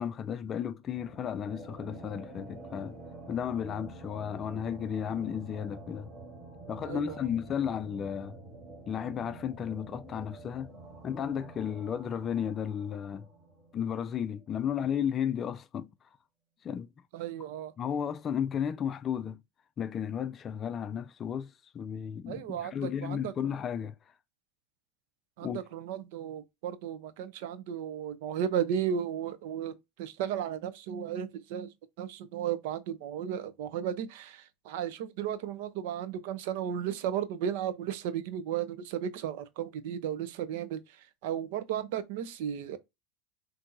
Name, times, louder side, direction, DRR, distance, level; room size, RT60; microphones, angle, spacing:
voice 1, 0.0-3.0 3.3-6.1 6.7-8.4 8.9-10.7 11.0-13.3 13.7-15.9 16.6-16.9 17.8-19.4 19.8-23.9 25.4-25.6, left 8 dB, 35° left, 0.4 m, -33 dB
sound 1, 0.9-14.0, right 2 dB, 30° right, 2.4 m, -48 dB
voice 2, 6.8-7.3 17.1-17.7 22.3-23.3 25.4-42.8, right 9 dB, 70° right, 0.7 m, -34 dB
5.8 x 2.7 x 2.6 m
supercardioid pair, 120°, 0 cm